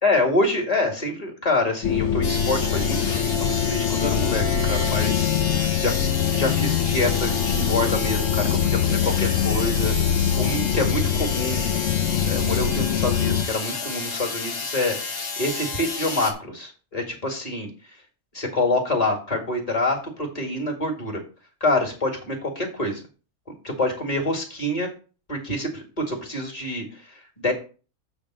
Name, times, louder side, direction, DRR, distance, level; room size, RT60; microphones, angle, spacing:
voice 1, 0.0-3.0 3.2-5.9 6.3-11.6 12.3-17.7 18.3-21.2 21.6-23.0 23.5-24.9 25.3-27.5, left 2 dB, 25° left, 1 dB, 2.1 m, -26 dB
sound 1, 1.8-13.4, left 8 dB, 65° left, 0.9 m, -23 dB
sound 2, 2.2-16.3, left 4 dB, 45° left, 1.3 m, -31 dB
8.1 x 3.5 x 6.3 m, 0.36 s
omnidirectional pair, 1.5 m